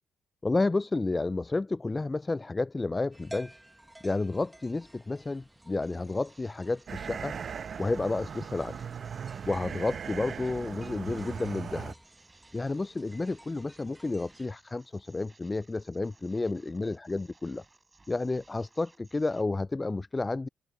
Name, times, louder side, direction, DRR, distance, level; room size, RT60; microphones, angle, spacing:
voice 1, 0.4-3.5 4.0-7.4 7.8-8.9 9.5-11.9 12.5-17.6 18.1-20.5, left 3 dB, 25° left, 0.4 m, -31 dB
sound 1, 3.1-14.5, right 1 dB, 10° right, 1.5 m, -54 dB
sound 2, 5.8-19.4, right 3 dB, 25° right, 3.9 m, -62 dB
sound 3, 6.9-11.9, right 7 dB, 55° right, 0.9 m, -39 dB
hypercardioid pair, 45°, 0 cm